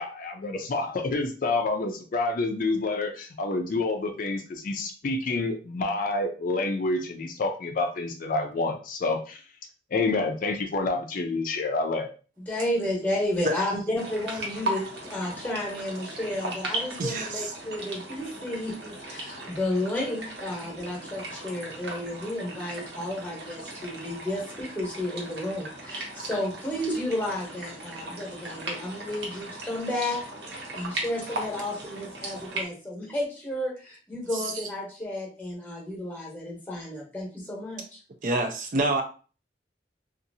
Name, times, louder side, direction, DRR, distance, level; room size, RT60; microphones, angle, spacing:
voice 1, 0.0-9.4 9.9-12.1, left 3 dB, 50° left, 4 dB, 0.4 m, -28 dB
voice 2, 12.4-37.8, left 1 dB, 10° left, -3 dB, 0.9 m, -32 dB
sound 1, 14.0-32.7, right 2 dB, 70° right, 0.9 m, -37 dB
voice 3, 17.0-17.5 32.2-32.3 34.3-34.7 38.2-39.0, right 2 dB, 45° right, 5 dB, 0.4 m, -28 dB
2.7 x 2.4 x 2.6 m, 0.36 s
head